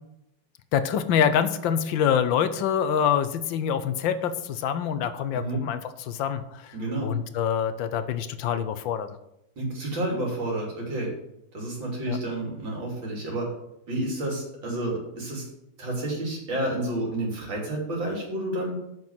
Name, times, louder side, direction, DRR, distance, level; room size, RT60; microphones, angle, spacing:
voice 1, 0.7-6.7 7.0-9.2 12.1-12.2, left 8 dB, 90° left, 11 dB, 1.5 m, -25 dB
voice 2, 5.3-5.6 6.7-7.1 9.6-11.1 11.5-13.5 13.9-15.5 15.8-18.7, right 1 dB, 85° right, -2 dB, 3.8 m, -30 dB
7.4 x 6.1 x 7.3 m, 0.84 s
omnidirectional pair, 2.0 m